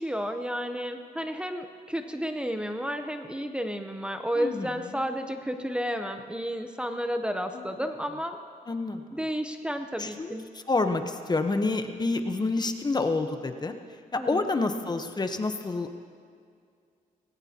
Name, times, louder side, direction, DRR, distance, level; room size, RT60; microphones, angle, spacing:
voice 1, 0.0-8.4 9.1-10.5 14.2-14.4, equal, 5° right, 6 dB, 0.7 m, -32 dB
voice 2, 4.3-5.1 7.5-7.8 8.7-9.0 10.0-13.8 14.1-16.0, left 3 dB, 25° left, 7 dB, 0.9 m, -29 dB
19.5 x 17.5 x 2.9 m, 2.3 s
cardioid pair, 90°, 16 cm